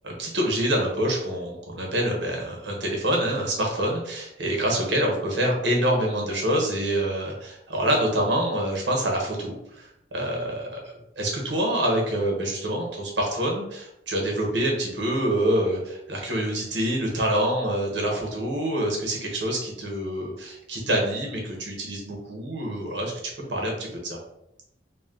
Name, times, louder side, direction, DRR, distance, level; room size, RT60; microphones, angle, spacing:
voice 1, 0.0-10.8 11.2-23.1 23.4-24.2, right 1 dB, 70° right, 0 dB, 1.2 m, -26 dB
4.1 x 2.4 x 3.8 m, 0.83 s
head